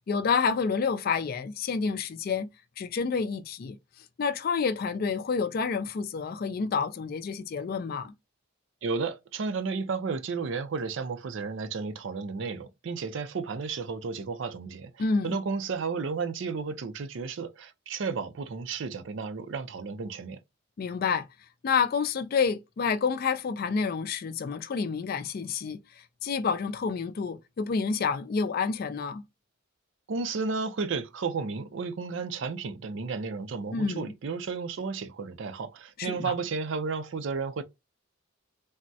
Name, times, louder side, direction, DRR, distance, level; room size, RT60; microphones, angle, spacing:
voice 1, 0.0-2.5 2.8-3.8 4.2-8.1 15.0-15.4 20.8-21.3 21.6-29.2 33.7-34.1 36.0-36.3, left 5 dB, 45° left, 0.3 m, -29 dB
voice 2, 8.8-20.4 30.1-37.6, right 4 dB, 60° right, 0.4 m, -33 dB
3.4 x 2.0 x 2.6 m
head